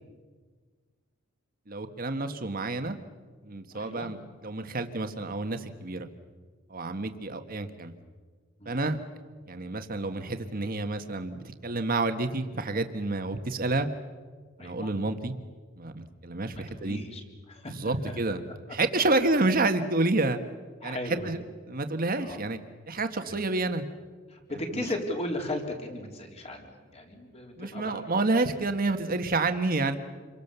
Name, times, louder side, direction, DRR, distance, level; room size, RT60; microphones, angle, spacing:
voice 1, 1.7-3.0 3.4-6.1 6.7-7.9 8.6-9.0 9.5-13.9 14.6-15.3 15.8-17.0 17.7-18.4 18.7-20.4 20.8-21.4 21.7-22.6 22.9-23.8 24.7-24.8 27.6-30.0, right 2 dB, 45° right, 8 dB, 1.6 m, -29 dB
voice 2, 3.7-4.1 8.6-8.9 14.6-14.9 16.5-17.2 17.5-18.2 19.0-19.2 20.8-21.3 22.2-22.4 23.3-23.4 24.3-28.0, left 1 dB, 30° left, 2 dB, 3.8 m, -36 dB
28.5 x 23.5 x 6.9 m, 1.5 s
head